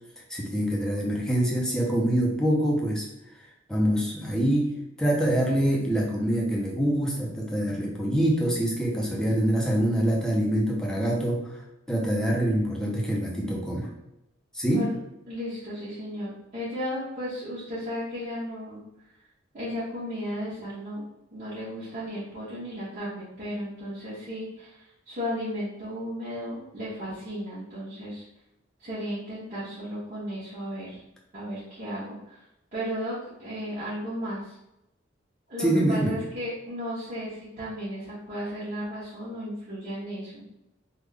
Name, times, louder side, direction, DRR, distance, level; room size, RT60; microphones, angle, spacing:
voice 1, 0.3-3.1 3.7-4.7 5.0-11.5 11.9-13.9 14.5-14.9 35.6-36.2, right 1 dB, 5° left, -3 dB, 0.6 m, -25 dB
voice 2, 15.3-18.8 19.5-21.0 21.3-28.2 28.8-31.0 31.3-32.4 32.7-34.6 35.5-40.4, equal, 40° right, -14 dB, 1.3 m, -34 dB
3.5 x 2.3 x 3.4 m, 0.88 s
head